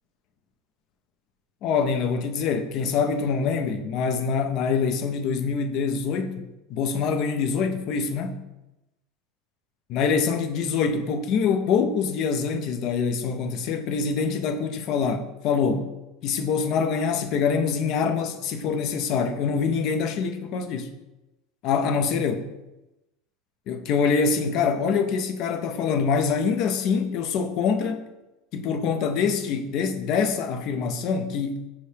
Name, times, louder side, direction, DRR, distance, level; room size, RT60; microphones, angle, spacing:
voice 1, 1.6-8.4 9.9-15.9 16.2-20.9 21.6-22.5 23.7-28.1 28.5-31.6, left 5 dB, 35° left, 0.4 m, -25 dB
5.4 x 2.7 x 3.3 m
supercardioid pair, 180°, 0 cm